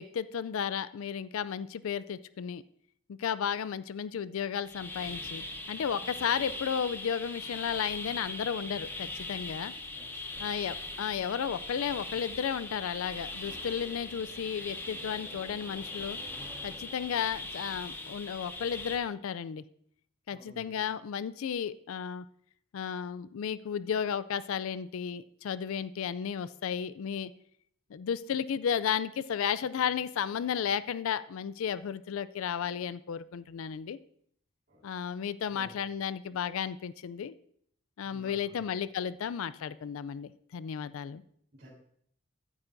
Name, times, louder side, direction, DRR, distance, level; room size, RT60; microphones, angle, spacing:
voice 1, 0.0-2.6 3.1-9.7 10.4-16.2 16.6-19.6 20.3-22.2 22.7-27.3 27.9-34.0 34.8-37.3 38.0-41.2, left 8 dB, 75° left, 16 dB, 0.4 m, -33 dB
sound 1, 4.6-19.0, left 2 dB, 10° left, 0.7 m, -40 dB
voice 2, 9.9-10.6 20.3-20.7 34.7-34.8 35.4-35.8 38.0-38.6 41.5-41.7, equal, 50° right, -10 dB, 3.7 m, -54 dB
sound 2, 11.7-17.4, equal, 5° right, 2.1 m, -54 dB
14.5 x 8.9 x 2.6 m, 0.66 s
head